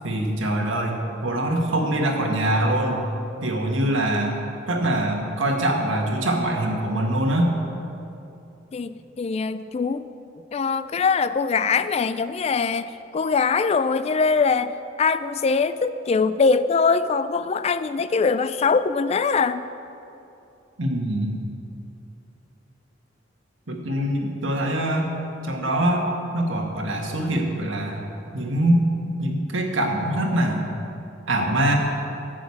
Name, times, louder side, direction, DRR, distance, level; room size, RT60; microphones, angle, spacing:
voice 1, 0.0-1.0 1.2-3.0 3.4-4.4 4.7-7.5 20.8-21.4 23.7-25.1 25.4-28.0 28.3-28.9 29.2-30.7 31.3-31.8, right 1 dB, 85° right, 1 dB, 1.6 m, -23 dB
voice 2, 8.7-10.1 10.5-14.7 15.0-19.7, left 5 dB, 35° left, 13 dB, 0.3 m, -22 dB
11.0 x 6.3 x 8.4 m, 2.8 s
head